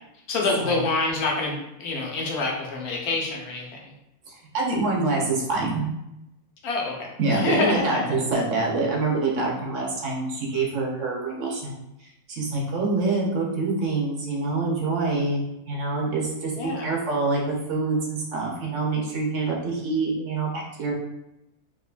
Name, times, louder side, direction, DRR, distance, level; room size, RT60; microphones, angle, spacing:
voice 1, 0.3-3.9 6.6-8.2 16.6-16.9, left 3 dB, 80° left, -1 dB, 1.3 m, -27 dB
voice 2, 4.3-5.9 7.2-11.8 12.3-20.9, right 3 dB, 60° right, -2 dB, 1.1 m, -26 dB
3.6 x 2.9 x 2.4 m, 0.87 s
omnidirectional pair, 1.6 m